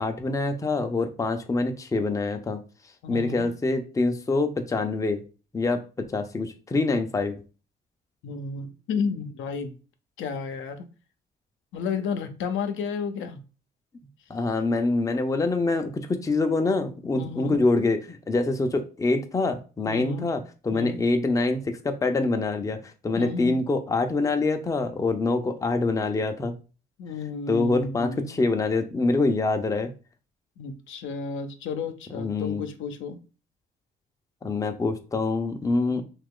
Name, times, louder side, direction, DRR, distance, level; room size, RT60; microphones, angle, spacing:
voice 1, 0.0-2.6 3.1-5.2 5.5-7.4 14.3-26.5 27.5-29.9 32.1-32.6 34.4-36.0, left 3 dB, 15° left, 0.5 m, -25 dB
voice 2, 3.0-3.5 8.2-9.7 10.2-10.9 11.7-13.4 17.1-17.6 19.9-20.3 20.7-21.0 23.2-23.6 27.0-28.4 30.6-33.2 35.9-36.0, left 5 dB, 75° left, 0.6 m, -32 dB
2.8 x 2.4 x 3.6 m
cardioid pair, 90°, 20 cm